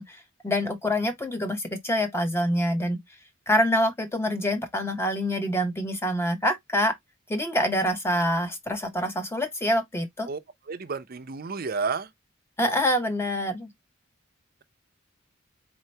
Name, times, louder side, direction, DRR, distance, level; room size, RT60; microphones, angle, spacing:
voice 1, 0.0-3.0 3.5-6.9 7.3-10.3 12.6-13.7, equal, 10° left, 0.7 m, -26 dB
voice 2, 10.7-12.1, right 4 dB, 45° right, 0.5 m, -31 dB
4.2 x 2.8 x 3.1 m
head